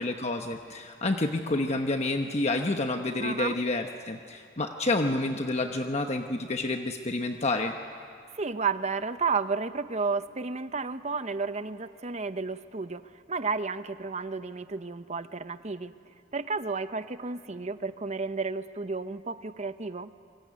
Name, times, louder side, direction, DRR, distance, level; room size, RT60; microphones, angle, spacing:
voice 1, 0.0-7.7, left 2 dB, 35° left, 5 dB, 1.0 m, -29 dB
voice 2, 3.2-3.6 8.3-13.0 13.3-15.9 16.3-20.1, right 4 dB, 40° right, 11 dB, 0.9 m, -32 dB
26.5 x 23.5 x 9.6 m, 2.3 s
head